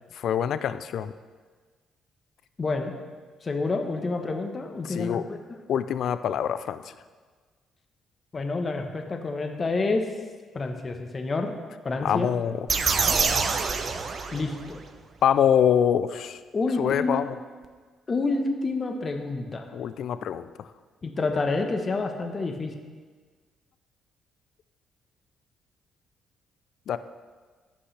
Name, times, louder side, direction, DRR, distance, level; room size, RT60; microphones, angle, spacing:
voice 1, 0.1-1.1 4.8-5.2 5.7-6.9 12.0-12.7 15.2-16.4 16.8-17.4 19.7-20.7 26.9-27.0, left 9 dB, 70° left, 13 dB, 0.4 m, -25 dB
voice 2, 2.6-2.9 3.4-5.4 8.3-10.0 10.5-11.5 11.8-12.3 14.3-14.8 16.5-17.3 18.1-19.7 21.0-22.7, left 3 dB, 35° left, 4 dB, 1.1 m, -28 dB
sound 1, 12.7-14.8, right 5 dB, 50° right, 0.7 m, -25 dB
15.5 x 5.4 x 3.4 m, 1.5 s
cardioid pair, 90°, 0 cm